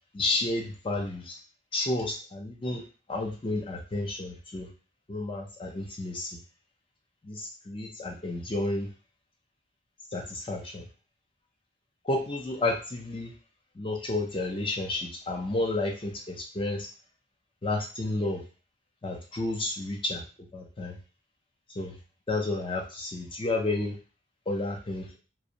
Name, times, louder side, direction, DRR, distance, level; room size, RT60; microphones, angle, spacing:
voice 1, 0.1-1.3 1.7-2.8 3.1-4.7 5.1-6.3 7.3-8.9 10.1-10.8 12.1-13.3 13.8-16.9 17.6-18.4 19.0-20.2 20.5-21.0 21.8-21.9 22.3-23.9 24.5-25.2, left 2 dB, 25° left, 1 dB, 0.4 m, -31 dB
2.5 x 2.0 x 2.7 m, 0.34 s
head